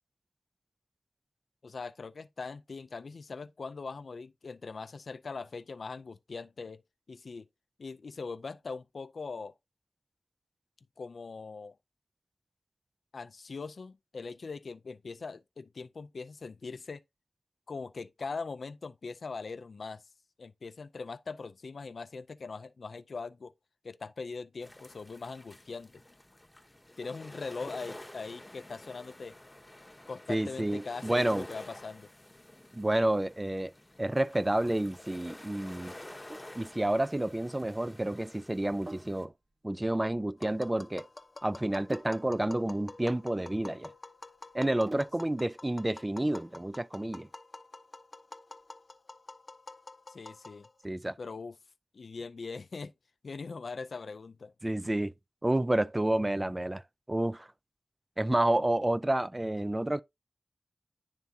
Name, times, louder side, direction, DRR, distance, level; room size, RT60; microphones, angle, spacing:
voice 1, 1.6-6.8 7.1-7.5 7.8-9.5 11.0-11.8 13.1-17.0 17.7-20.0 20.4-23.5 23.8-25.9 27.0-29.3 30.1-32.1 50.1-50.7 51.2-51.6 51.9-52.9 53.2-54.5, left 4 dB, 80° left, 0.4 m, -41 dB
sound 1, 24.6-39.3, left 1 dB, 20° left, 0.9 m, -50 dB
voice 2, 30.3-31.5 32.7-33.7 34.0-35.9 36.5-39.3 39.6-41.1 41.4-43.9 44.5-47.3 50.8-51.2 54.6-55.1 55.4-57.5 58.2-60.0, right 1 dB, 25° right, 0.4 m, -30 dB
Sink (filling or washing), 36.1-45.4, right 1 dB, 40° right, 0.9 m, -50 dB
Tap, 40.4-50.9, left 2 dB, 50° left, 0.7 m, -48 dB
10.5 x 3.5 x 2.7 m
cardioid pair, 50°, 0 cm